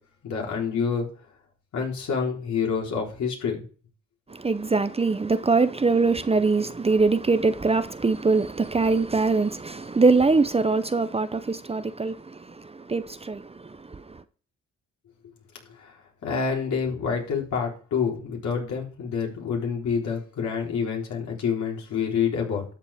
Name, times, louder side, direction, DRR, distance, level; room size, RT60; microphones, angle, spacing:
voice 1, 0.2-1.1 1.7-3.6 15.8-15.9 16.2-22.6, left 6 dB, 70° left, 3.9 m, -27 dB
voice 2, 4.3-14.2, right 3 dB, 20° right, 0.7 m, -23 dB
12.5 x 7.5 x 3.5 m
cardioid pair, 75°, 30 cm